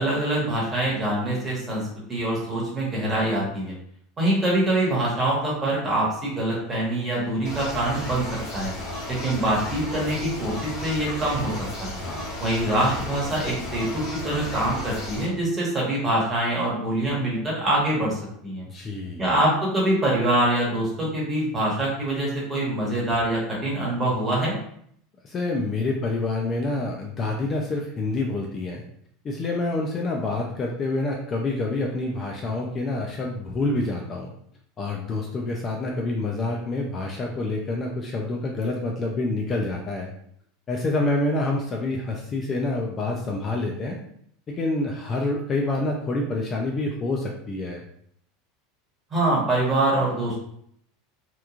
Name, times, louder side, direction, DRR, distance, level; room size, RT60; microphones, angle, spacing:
voice 1, 0.0-1.8 2.1-3.7 4.2-8.2 8.5-8.7 9.1-11.5 11.8-12.0 12.4-18.7 19.2-24.5 49.1-50.4, right 1 dB, 20° right, -5 dB, 1.1 m, -24 dB
sound 1, 7.4-15.3, equal, 45° left, 0.9 m, -34 dB
voice 2, 12.0-12.4 18.7-19.3 25.2-28.8 29.2-34.3 34.8-40.1 40.7-44.0 44.5-47.8, left 2 dB, 25° left, 0 dB, 0.3 m, -27 dB
2.9 x 2.2 x 2.4 m, 0.67 s
supercardioid pair, 140°, 0 cm